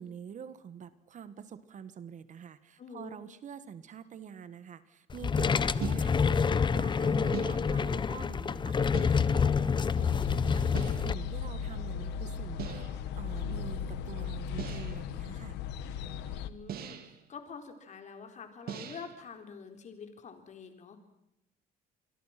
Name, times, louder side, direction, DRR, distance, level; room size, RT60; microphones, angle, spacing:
voice 1, 0.0-15.6, right 8 dB, 45° right, 14 dB, 1.6 m, -46 dB
voice 2, 2.8-3.2 16.4-17.0 17.3-21.0, left 5 dB, 45° left, 6 dB, 4.1 m, -46 dB
sound 1, 5.1-11.1, left 6 dB, 25° left, 0.8 m, -27 dB
sound 2, 5.8-6.5 7.3-8.0 8.9-9.5 10.7-11.2 12.6-13.1 14.6-15.1 16.7-17.3 18.7-19.2, right 9 dB, 65° right, 2.4 m, -41 dB
sound 3, 10.0-16.5, left 6 dB, 90° left, 1.3 m, -37 dB
27.5 x 22.5 x 6.0 m, 0.82 s
cardioid pair, 110°, 17 cm